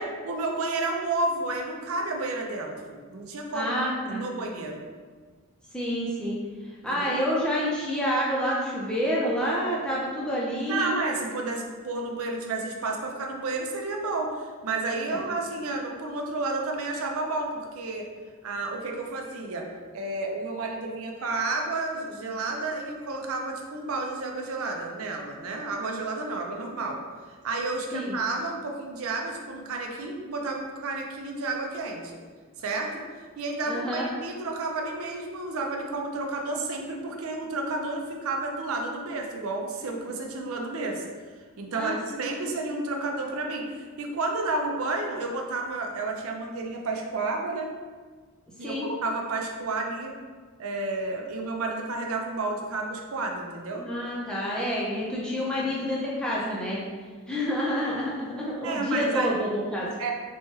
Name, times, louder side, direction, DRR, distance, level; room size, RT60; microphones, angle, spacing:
voice 1, 0.2-3.8 4.1-4.8 6.9-7.2 10.7-18.1 18.4-19.7 19.9-27.0 27.3-32.2 32.6-33.1 33.4-41.0 41.6-47.7 48.6-50.1 50.6-53.8 55.6-55.7 58.6-59.3 60.0-60.1, right 3 dB, 75° right, 1 dB, 0.5 m, -31 dB
voice 2, 3.5-4.2 5.7-6.4 6.8-10.9 15.1-15.2 27.9-28.2 33.7-34.1 41.7-42.3 48.6-48.9 53.8-56.8 57.3-60.1, equal, 5° left, -6 dB, 0.6 m, -28 dB
4.3 x 2.3 x 3.0 m, 1.5 s
head